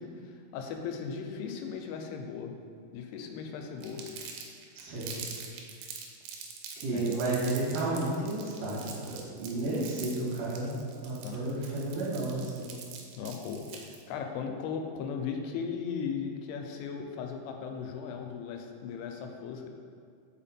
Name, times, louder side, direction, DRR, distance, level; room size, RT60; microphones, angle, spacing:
voice 1, 0.0-2.5 2.9-4.0 6.9-7.3 11.2-11.4 13.2-19.7, left 6 dB, 90° left, 4 dB, 3.0 m, -37 dB
Crumpling crinkling, 3.8-14.0, right 6 dB, 85° right, 2.9 m, -44 dB
voice 2, 4.8-5.1 6.8-12.7, right 2 dB, 50° right, -8 dB, 2.0 m, -32 dB
5.5 x 5.1 x 4.2 m, 2.2 s
omnidirectional pair, 5.4 m